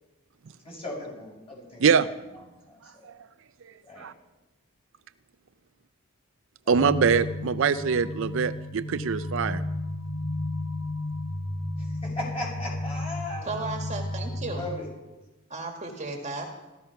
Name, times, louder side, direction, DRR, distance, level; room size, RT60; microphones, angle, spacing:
voice 1, 0.6-2.0 2.3-3.1 3.8-4.1 6.7-6.8 11.8-13.5 14.5-14.9, left 1 dB, 25° left, -2 dB, 6.3 m, -37 dB
sound 1, 6.7-14.7, left 1 dB, 60° left, 1.3 m, -33 dB
voice 2, 6.7-9.6, right 6 dB, 60° right, 12 dB, 0.5 m, -23 dB
voice 3, 13.5-14.7 15.5-16.5, right 3 dB, 30° right, 2 dB, 1.7 m, -34 dB
14.5 x 13.5 x 5.7 m, 1.1 s
head